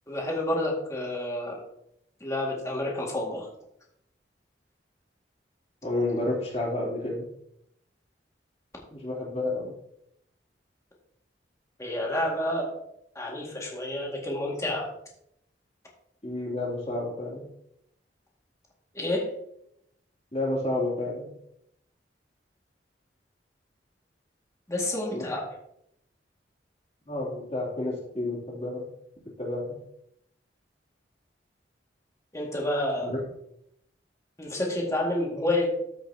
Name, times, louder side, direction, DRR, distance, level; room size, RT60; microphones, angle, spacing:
voice 1, 0.1-1.5 2.2-3.5 11.8-12.7 13.2-14.9 18.9-19.3 24.7-25.5 32.3-33.1 34.4-35.7, left 1 dB, 15° left, -2 dB, 1.9 m, -29 dB
voice 2, 5.8-7.2 8.9-9.7 16.2-17.4 20.3-21.3 25.1-25.2 27.1-28.9 29.4-29.7 33.0-33.2, left 2 dB, 35° left, -3 dB, 2.8 m, -30 dB
13.5 x 5.7 x 2.8 m, 0.75 s
head